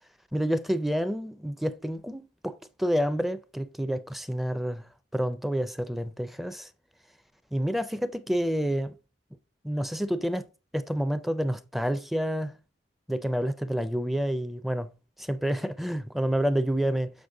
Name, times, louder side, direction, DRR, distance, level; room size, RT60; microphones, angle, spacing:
voice 1, 0.3-4.8 5.1-6.7 7.5-9.0 9.6-10.4 10.7-12.5 13.1-14.9 15.2-17.1, equal, ahead, 0.4 m, -28 dB
7.9 x 5.3 x 3.7 m
head